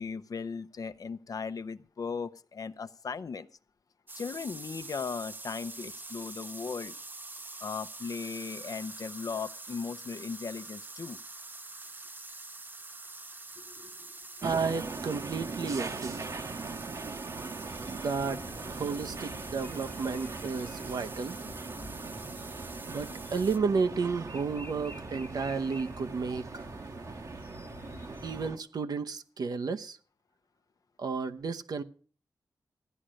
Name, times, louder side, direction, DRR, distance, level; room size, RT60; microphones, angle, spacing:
voice 1, 0.0-3.5 4.1-6.9 7.6-11.2 13.6-14.0, left 5 dB, 60° left, 12 dB, 0.7 m, -37 dB
sound 1, 4.1-23.6, right 2 dB, 30° right, 0.7 m, -46 dB
sound 2, 14.4-28.6, right 4 dB, 50° right, 1.0 m, -41 dB
voice 2, 14.4-16.2 17.8-21.4 22.9-26.6 28.2-30.0 31.0-31.8, right 5 dB, 75° right, 9 dB, 0.9 m, -32 dB
sound 3, 17.6-28.5, left 2 dB, 30° left, 1.3 m, -49 dB
14.5 x 10.0 x 6.3 m, 0.42 s
wide cardioid pair, 85°, 7 cm